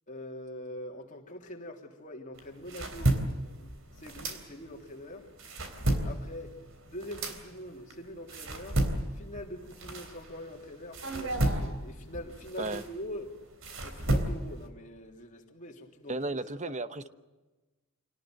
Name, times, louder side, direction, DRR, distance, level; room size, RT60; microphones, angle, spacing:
voice 1, 0.1-3.2 3.9-5.4 6.0-13.4 13.8-17.1, left 1 dB, 35° left, 3.3 m, -44 dB
sound 1, 2.3-4.9 5.2-10.5 10.9-14.7, right 1 dB, 65° right, 3.4 m, -32 dB
voice 2, 16.1-17.1, right 2 dB, 35° right, 1.0 m, -34 dB
26.5 x 18.5 x 7.7 m
head